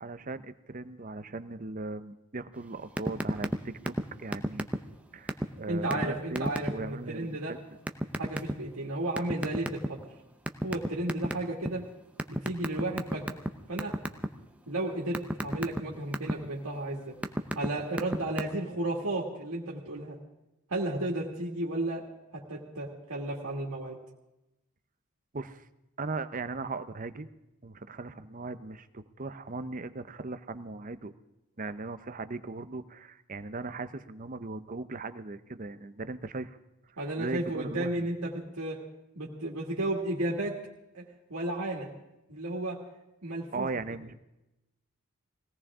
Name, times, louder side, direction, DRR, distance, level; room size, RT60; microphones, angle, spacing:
voice 1, 0.0-4.7 5.1-7.6 25.3-25.7 26.0-27.3 27.6-31.1 31.6-36.6 37.0-38.1 43.5-44.2, right 3 dB, 40° right, 12 dB, 0.7 m, -38 dB
sound 1, 3.0-3.6 3.9-4.0 4.3-5.0 5.3-5.5 5.9-6.0 6.4-6.7 7.9-8.5 9.2-10.0 10.5-11.7 12.2-13.5 13.8-14.3 14.7-16.3 16.9-17.7 17.9-18.4, equal, 5° right, 0.7 m, -29 dB
voice 2, 5.7-7.5 8.2-10.1 10.6-11.9 12.3-13.3 13.7-14.0 14.7-17.2 17.5-20.2 20.7-22.0 22.3-24.0 37.0-38.8 39.2-40.6 40.9-41.9 42.3-42.8 43.2-43.7, right 1 dB, 80° right, -3 dB, 2.2 m, -33 dB
21.0 x 17.5 x 3.7 m, 0.93 s
head